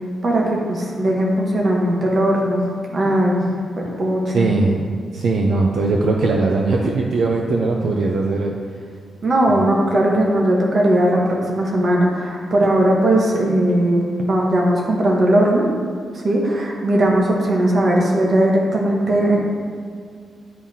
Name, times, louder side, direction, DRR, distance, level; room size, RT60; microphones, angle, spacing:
voice 1, 0.2-2.6 2.9-3.5 3.8-4.5 9.2-15.7 16.2-19.4, right 1 dB, 35° right, -2 dB, 1.0 m, -18 dB
voice 2, 4.3-4.9 5.1-8.6 9.5-9.6, right 3 dB, 65° right, 0 dB, 0.5 m, -19 dB
10.5 x 3.7 x 2.8 m, 2.1 s
wide cardioid pair, 175°, 0 cm